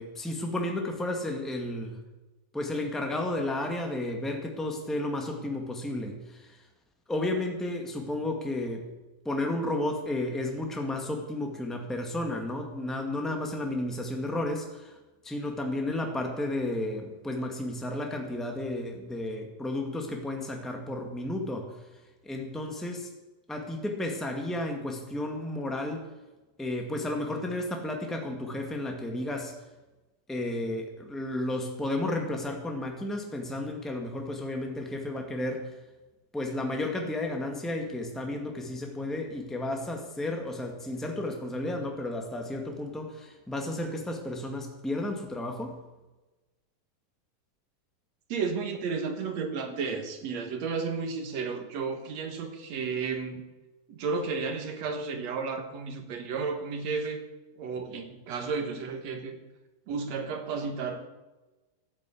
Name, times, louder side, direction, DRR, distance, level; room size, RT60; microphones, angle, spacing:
voice 1, 0.0-2.0 2.5-6.6 7.1-8.8 9.2-15.0 15.2-21.7 22.2-23.1 23.5-26.0 26.6-29.5 30.3-35.7 36.3-45.7, left 1 dB, ahead, 2 dB, 0.6 m, -32 dB
voice 2, 48.3-53.4 53.9-57.2 57.6-59.4 59.9-61.1, right 5 dB, 60° right, 6 dB, 2.3 m, -32 dB
13.0 x 9.1 x 8.5 m, 1.1 s
omnidirectional pair, 4.0 m